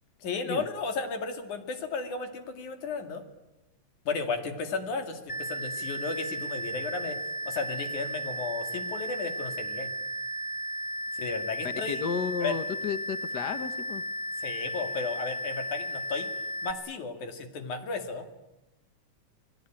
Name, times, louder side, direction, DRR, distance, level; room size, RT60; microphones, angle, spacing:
voice 1, 0.2-3.2 4.1-7.2 7.5-9.9 11.2-12.1 12.4-12.6 14.4-16.3 16.6-18.2, left 4 dB, 85° left, 6 dB, 3.8 m, -34 dB
sound 1, 5.3-16.7, right 1 dB, 15° left, 2.3 m, -35 dB
voice 2, 11.9-14.0, left 6 dB, 50° left, 11 dB, 1.4 m, -32 dB
28.0 x 21.0 x 9.0 m, 1.0 s
omnidirectional pair, 3.4 m